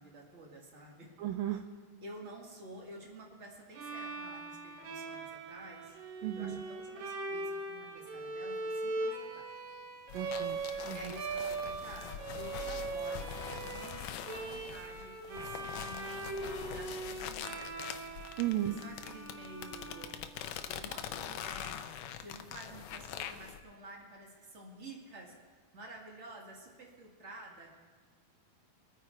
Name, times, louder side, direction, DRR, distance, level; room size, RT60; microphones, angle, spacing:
voice 1, 0.0-1.1 1.4-1.5 2.0-5.9 6.3-9.4 10.9-18.0 18.6-20.2 20.6-21.8 22.2-27.7, right 1 dB, 30° right, -1 dB, 1.3 m, -50 dB
voice 2, 1.2-1.6 6.2-6.6 10.1-10.6 10.9-11.0 18.4-18.8, right 13 dB, 85° right, 7 dB, 2.0 m, -34 dB
Bowed string instrument, 3.7-20.7, right 3 dB, 65° right, 2.8 m, -41 dB
sound 1, 10.1-23.6, left 10 dB, 80° left, 1.8 m, -44 dB
23.5 x 9.4 x 4.6 m, 1.5 s
omnidirectional pair, 4.4 m